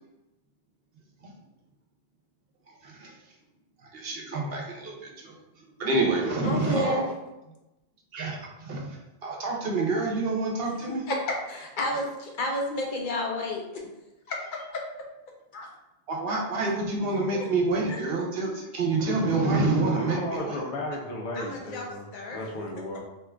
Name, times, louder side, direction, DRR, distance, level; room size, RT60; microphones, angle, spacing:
voice 1, 2.8-3.1 3.8-7.0 8.1-11.1 16.1-20.6, right 3 dB, 65° right, 0.9 m, -28 dB
voice 2, 6.4-7.0 11.1-11.2 11.5-13.8 14.3-14.6 15.5-15.7 17.3-17.5 17.9-18.0 21.3-22.5, left 1 dB, 55° left, 0.7 m, -31 dB
voice 3, 19.9-22.1 22.3-23.0, left 1 dB, 85° left, 1.0 m, -34 dB
2.9 x 2.4 x 3.3 m
omnidirectional pair, 1.1 m